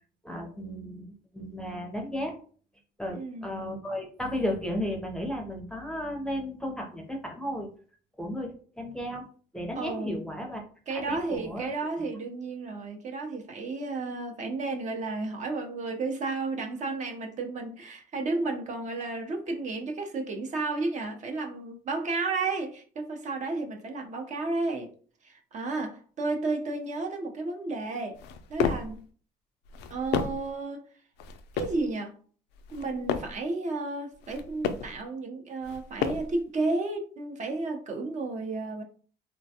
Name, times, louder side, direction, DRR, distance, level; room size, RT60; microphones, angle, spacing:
voice 1, 0.2-2.3 3.0-7.7 8.2-9.3 9.5-10.6 10.9-12.1, equal, 5° left, 2 dB, 0.6 m, -34 dB
voice 2, 3.1-3.5 9.8-10.2 10.9-24.9 25.2-28.2 28.5-29.0 29.9-30.8 31.5-32.2 32.7-38.8, right 3 dB, 45° right, 3 dB, 0.6 m, -32 dB
sound 1, 28.1-29.0 29.6-30.5 31.2-31.9 32.6-33.4 34.1-35.0 35.6-36.4, left 7 dB, 85° left, 0.4 m, -32 dB
3.2 x 2.2 x 2.7 m, 0.42 s
cardioid pair, 110°, 17 cm